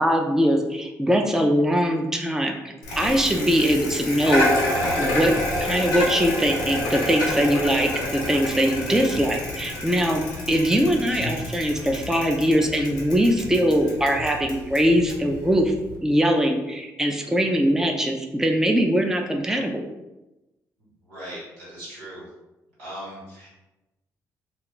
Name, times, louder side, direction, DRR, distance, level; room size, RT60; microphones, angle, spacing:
voice 1, 0.0-4.5 5.0-5.3 5.6-10.2 10.5-15.7 16.0-19.8, equal, 5° right, 2 dB, 0.4 m, -22 dB
Bicycle, 2.8-16.0, left 1 dB, 85° left, 0.6 m, -29 dB
voice 2, 21.0-22.2 22.8-23.5, right 1 dB, 90° right, -9 dB, 1.4 m, -40 dB
2.4 x 2.3 x 3.6 m, 1.0 s
hypercardioid pair, 45°, 9 cm